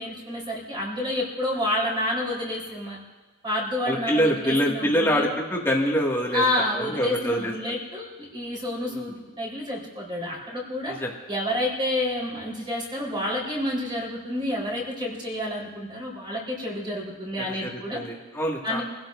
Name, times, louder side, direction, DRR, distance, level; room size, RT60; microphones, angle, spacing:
voice 1, 0.0-3.0 3.4-5.3 6.3-10.9 11.3-18.0 18.6-18.8, left 1 dB, 20° right, -4 dB, 4.0 m, -29 dB
voice 2, 3.9-6.4 6.7-7.5 8.9-9.1 10.9-11.1 17.4-18.8, equal, 10° left, -2 dB, 1.9 m, -25 dB
27.0 x 16.0 x 2.6 m, 1.2 s
head